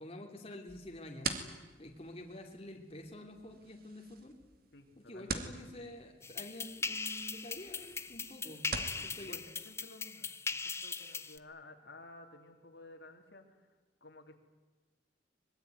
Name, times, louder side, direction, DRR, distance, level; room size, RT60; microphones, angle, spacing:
voice 1, 0.0-1.4 1.8-4.4 5.0-8.6 9.0-9.4, left 1 dB, 30° left, 1 dB, 2.8 m, -48 dB
sound 1, 0.7-9.0, right 4 dB, 55° right, 2.6 m, -45 dB
voice 2, 4.7-5.4 9.0-9.4 9.6-13.7 14.0-14.3, left 2 dB, 65° left, 4 dB, 3.2 m, -54 dB
sound 2, 6.2-11.4, left 4 dB, 15° left, 0.8 m, -40 dB
25.0 x 22.0 x 9.5 m, 1.2 s
head